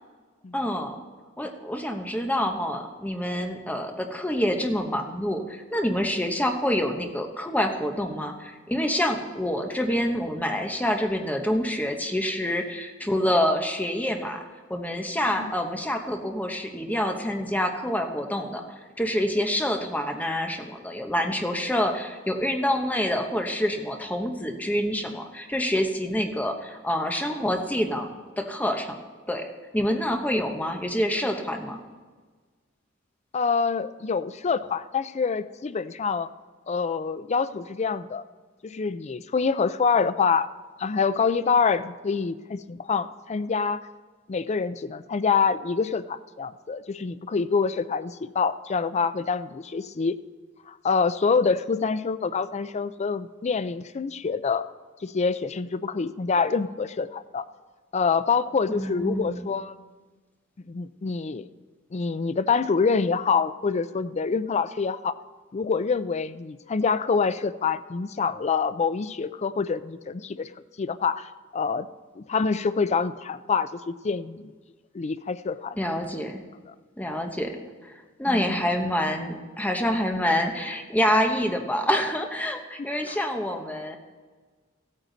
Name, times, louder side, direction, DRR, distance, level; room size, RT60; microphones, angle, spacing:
voice 1, 0.5-1.0 1.4-14.4 14.7-18.6 19.0-29.0 29.3-29.5 29.7-31.8 58.7-59.5 75.8-76.4 77.0-77.5 77.8-77.9 78.2-84.0, left 1 dB, 10° left, 4 dB, 1.0 m, -27 dB
voice 2, 33.3-36.3 36.7-38.2 38.6-40.5 40.8-43.8 44.3-50.2 50.7-54.7 55.0-57.5 57.9-59.7 60.7-61.5 61.9-65.2 65.5-70.5 70.8-71.9 72.2-74.5 74.9-75.8 78.3-78.6 82.8-83.2, left 5 dB, 35° left, 14 dB, 0.4 m, -26 dB
15.5 x 9.1 x 4.0 m, 1.4 s
head